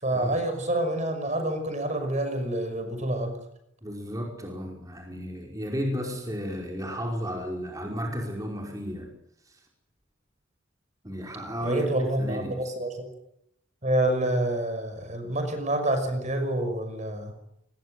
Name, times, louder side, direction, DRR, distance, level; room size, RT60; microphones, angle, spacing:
voice 1, 0.0-3.4 11.6-13.1 13.8-17.3, right 1 dB, 35° right, 7 dB, 5.8 m, -27 dB
voice 2, 3.8-9.2 9.4-9.7 11.0-12.7, equal, 15° right, 0 dB, 5.1 m, -33 dB
27.5 x 21.0 x 7.9 m, 0.79 s
head